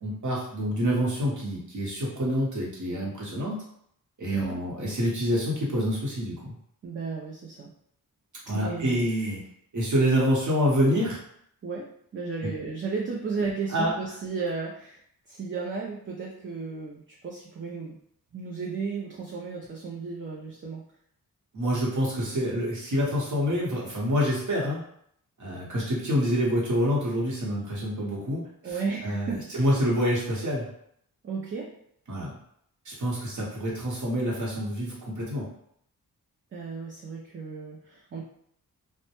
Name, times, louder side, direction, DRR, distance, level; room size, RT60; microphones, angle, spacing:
voice 1, 0.0-3.5 4.2-6.5 8.5-9.4 9.7-11.2 13.7-13.9 21.5-24.8 25.4-30.7 32.1-32.4 32.8-35.5, equal, 55° right, -4 dB, 1.0 m, -27 dB
voice 2, 6.8-7.7 8.5-9.1 11.6-15.0 15.3-18.0 18.3-20.8 28.6-29.7 31.2-31.7 36.5-38.2, right 4 dB, 35° right, -3 dB, 0.4 m, -34 dB
2.1 x 2.1 x 2.9 m, 0.68 s
cardioid pair, 70°, 35 cm